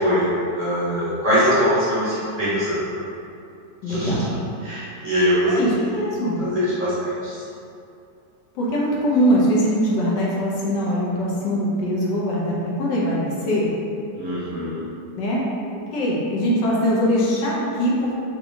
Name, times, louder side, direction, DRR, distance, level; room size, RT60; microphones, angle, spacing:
voice 1, 0.0-3.0 3.9-5.9 6.4-7.4 14.1-14.8, equal, 35° right, -12 dB, 1.0 m, -22 dB
voice 2, 3.8-4.3 5.5-6.4 8.5-13.7 15.1-15.5 15.9-18.1, equal, 85° left, -5 dB, 1.4 m, -22 dB
4.5 x 2.9 x 2.6 m, 2.6 s
omnidirectional pair, 1.8 m